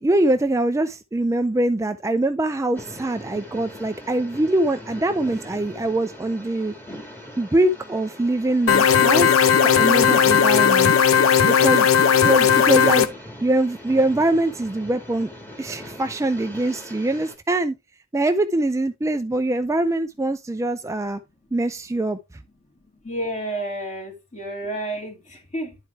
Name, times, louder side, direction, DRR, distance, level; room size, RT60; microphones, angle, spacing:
voice 1, 0.0-6.7 7.4-9.3 9.6-10.9 11.5-13.1 13.4-15.3 15.6-17.7 18.1-21.2 21.5-22.2, right 2 dB, 15° right, 0.4 m, -23 dB
sound 1, 2.7-17.4, equal, 10° left, 1.8 m, -41 dB
sound 2, 8.7-13.1, left 7 dB, 80° left, 0.8 m, -16 dB
voice 2, 23.0-25.8, right 1 dB, 35° left, 2.7 m, -30 dB
10.5 x 4.7 x 3.3 m
head